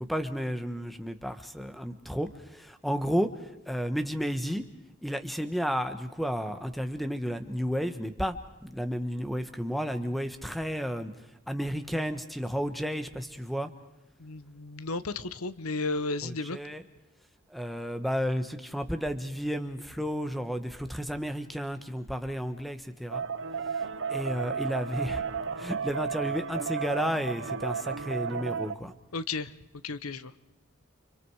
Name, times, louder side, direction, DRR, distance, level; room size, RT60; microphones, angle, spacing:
voice 1, 0.1-3.3 3.7-4.6 5.0-8.4 8.6-11.1 11.5-13.7 16.2-16.8 17.5-23.2 24.1-25.2 25.6-28.9, equal, ahead, 9 dB, 1.2 m, -32 dB
voice 2, 14.2-16.6 29.1-29.5 29.8-30.3, left 3 dB, 90° left, 14 dB, 1.1 m, -33 dB
sound 1, 23.1-28.8, right 6 dB, 60° right, 0.8 m, -33 dB
30.0 x 26.0 x 4.8 m, 0.93 s
head